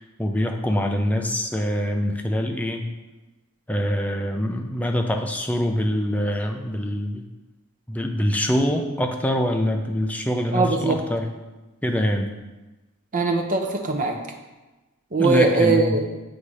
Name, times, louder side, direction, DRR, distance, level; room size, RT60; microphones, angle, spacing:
voice 1, 0.0-2.9 3.7-7.2 7.9-11.3 11.8-12.3 15.2-15.9, equal, 5° left, 3 dB, 0.5 m, -24 dB
voice 2, 10.5-11.0 13.1-14.1 15.1-16.1, right 3 dB, 40° right, 2 dB, 0.7 m, -20 dB
8.0 x 2.8 x 4.9 m, 1.1 s
head